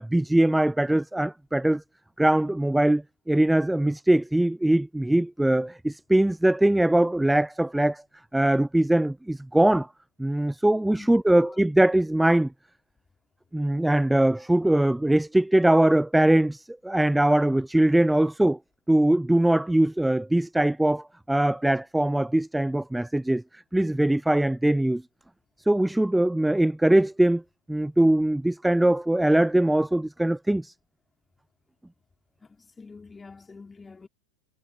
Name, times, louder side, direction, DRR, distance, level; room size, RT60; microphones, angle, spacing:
voice 1, 0.0-1.8 2.2-8.0 8.3-9.9 10.2-12.5 13.5-18.6 18.9-25.0 25.7-27.4 27.7-30.7, right 1 dB, 5° right, 0.4 m, -22 dB
voice 2, 10.9-11.6 32.4-34.1, left 4 dB, 10° left, 3.9 m, -46 dB
figure-of-eight pair, 90°, 0 cm